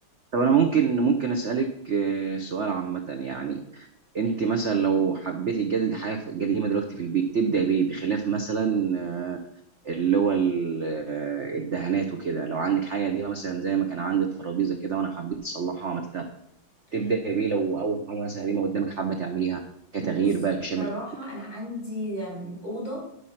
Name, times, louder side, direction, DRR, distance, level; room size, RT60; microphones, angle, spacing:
voice 1, 0.3-3.9 4.1-9.4 9.8-16.2 16.9-19.6 19.9-20.9, right 6 dB, 55° right, 5 dB, 0.8 m, -26 dB
voice 2, 20.0-20.4 20.8-23.0, equal, 60° left, -3 dB, 5.8 m, -34 dB
11.5 x 5.7 x 5.8 m, 0.74 s
omnidirectional pair, 2.3 m